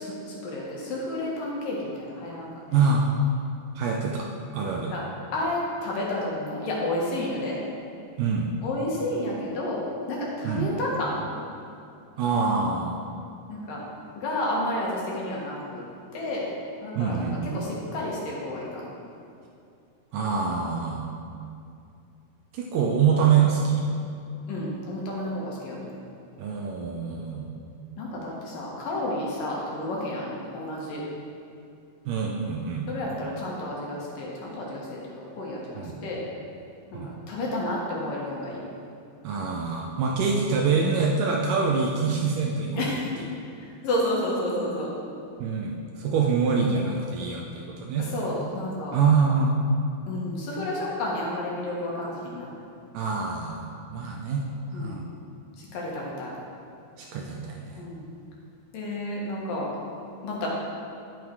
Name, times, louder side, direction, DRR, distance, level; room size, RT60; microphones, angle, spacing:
voice 1, 0.0-2.5 4.9-5.0 5.3-7.6 8.6-9.8 10.1-11.2 13.5-13.8 14.2-15.8 16.1-16.5 16.8-17.2 17.5-18.8 24.5-25.8 28.0-31.0 32.9-35.6 36.0-36.2 36.9-38.6 42.7-43.0 43.6-44.9 48.1-49.0 50.1-52.5 54.7-55.1 55.7-56.3 57.8-58.1 58.7-59.7 60.2-60.5, left 1 dB, 65° left, -4 dB, 3.1 m, -31 dB
voice 2, 2.7-3.1 3.8-4.3 4.5-4.9 8.2-8.5 10.4-10.7 12.2-13.0 17.0-17.6 20.1-21.1 22.5-23.9 26.4-27.5 32.1-32.9 35.8-36.0 36.9-37.1 39.2-42.9 45.4-48.1 48.9-49.6 52.9-54.4 54.7-55.1 57.0-57.8, right 5 dB, 75° right, 0 dB, 2.0 m, -25 dB
10.5 x 7.6 x 4.6 m, 2.5 s
omnidirectional pair, 4.4 m